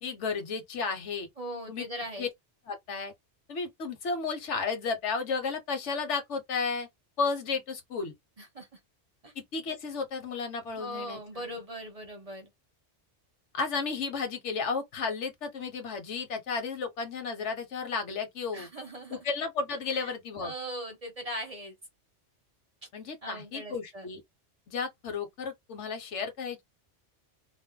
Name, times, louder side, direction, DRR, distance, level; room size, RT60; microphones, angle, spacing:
voice 1, 0.0-1.3 1.7-1.9 2.2-2.3 2.7-3.1 3.5-6.9 7.2-8.1 9.4-11.6 13.5-18.7 19.1-20.5 22.9-24.2 24.7-26.6, left 5 dB, 80° left, 1.1 m, -33 dB
voice 2, 1.4-2.3 8.4-8.7 9.2-9.3 10.7-12.5 18.5-19.2 19.9-20.1 20.4-21.8 23.2-24.1, equal, 35° right, 0.8 m, -40 dB
2.5 x 2.0 x 3.6 m
omnidirectional pair, 1.2 m